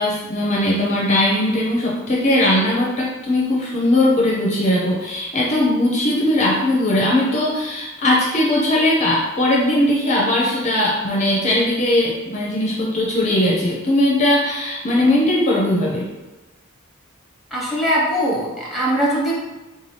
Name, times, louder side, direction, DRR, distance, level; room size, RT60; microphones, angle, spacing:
voice 1, 0.0-16.1, left 1 dB, 30° left, -3 dB, 0.5 m, -19 dB
voice 2, 17.5-19.3, equal, ahead, -5 dB, 0.8 m, -21 dB
3.6 x 2.7 x 3.2 m, 1.1 s
head